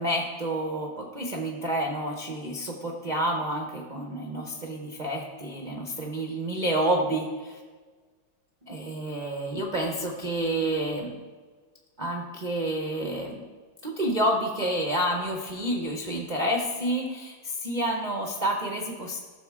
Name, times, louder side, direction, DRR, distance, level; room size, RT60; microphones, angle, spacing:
voice 1, 0.0-7.6 8.7-11.2 12.0-13.5 13.8-19.2, right 1 dB, 45° right, 1 dB, 0.5 m, -29 dB
15.0 x 6.4 x 3.6 m, 1.4 s
omnidirectional pair, 2.2 m